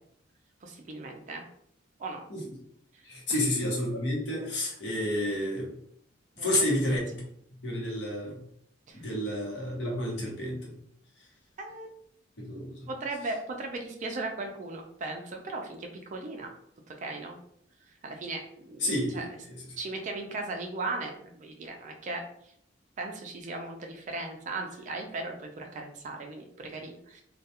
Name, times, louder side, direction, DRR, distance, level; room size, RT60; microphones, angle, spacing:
voice 1, 0.6-1.4 2.0-2.2 2.9-3.4 6.4-6.6 8.9-9.0 11.6-11.9 12.9-16.5 16.9-17.4 18.0-19.4 19.8-22.2 23.0-27.2, right 2 dB, 40° right, 3 dB, 0.4 m, -37 dB
voice 2, 3.0-5.7 6.4-7.2 7.6-8.4 8.9-10.7 12.4-12.9 18.8-19.3, left 1 dB, 65° left, -3 dB, 0.9 m, -30 dB
2.3 x 2.2 x 2.8 m, 0.69 s
head